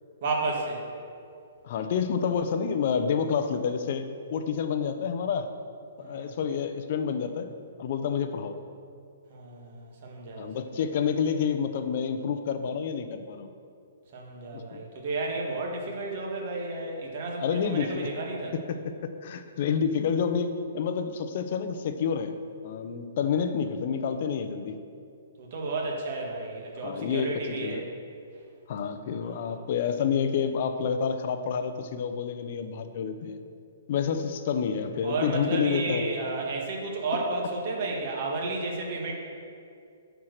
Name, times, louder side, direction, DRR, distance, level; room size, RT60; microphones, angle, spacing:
voice 1, 0.2-0.8 6.0-6.3 9.3-10.5 14.1-18.5 25.4-27.8 29.2-29.4 35.0-39.1, right 3 dB, 40° right, -1 dB, 1.7 m, -32 dB
voice 2, 1.6-5.5 6.0-7.5 7.8-8.5 10.4-13.5 14.5-14.8 17.4-18.1 18.5-22.4 22.6-24.8 26.8-27.9 28.7-33.4 33.9-36.1, left 6 dB, 40° left, 9 dB, 0.6 m, -29 dB
9.8 x 4.6 x 6.6 m, 2.5 s
hypercardioid pair, 165°, 0 cm